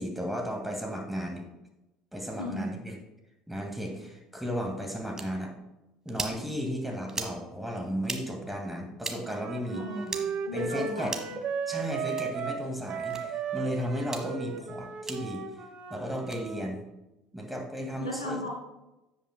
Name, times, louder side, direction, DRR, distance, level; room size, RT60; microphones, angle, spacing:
voice 1, 0.0-1.4 2.1-3.0 3.5-5.5 6.1-9.8 10.5-11.1 11.7-15.4 15.9-16.8 17.3-18.5, equal, 5° right, 1 dB, 1.9 m, -34 dB
voice 2, 2.4-2.7 9.7-11.4 18.0-18.5, left 1 dB, 85° left, -2 dB, 2.0 m, -36 dB
sound 1, 5.2-5.3 6.1-6.4 7.1-7.4 8.0-8.2 9.0-9.2 10.1-10.2 11.0-11.3 12.1-12.3 13.1-13.2 14.0-14.2 15.1-15.2 16.2-16.4, right 3 dB, 20° right, 1.3 m, -36 dB
Wind instrument woodwind instrument, 9.2-16.6, right 6 dB, 50° right, 0.9 m, -35 dB
16.0 x 5.4 x 2.2 m, 0.97 s
figure-of-eight pair, 60°, 3 cm